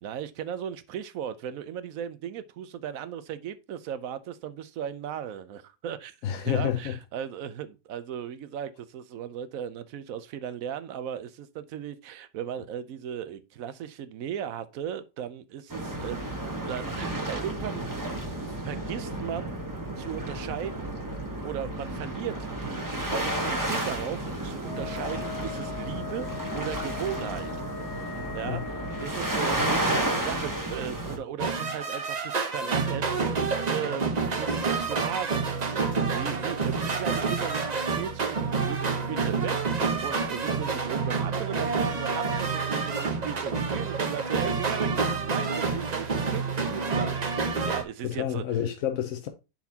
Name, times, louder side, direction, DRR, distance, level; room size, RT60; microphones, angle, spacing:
voice 1, 0.0-16.4 16.6-18.1 18.6-19.6 20.0-20.9 21.4-27.5 27.8-48.4, right 9 dB, 80° right, 1.1 m, -37 dB
voice 2, 6.2-7.0 28.4-28.7 48.0-49.3, left 10 dB, 75° left, 1.2 m, -29 dB
sound 1, 15.7-31.2, right 1 dB, 15° right, 1.1 m, -32 dB
Wind instrument woodwind instrument, 24.6-29.9, left 10 dB, 55° left, 1.4 m, -40 dB
sound 2, 31.4-47.8, right 4 dB, 35° right, 0.9 m, -28 dB
10.5 x 4.1 x 2.8 m
omnidirectional pair, 1.4 m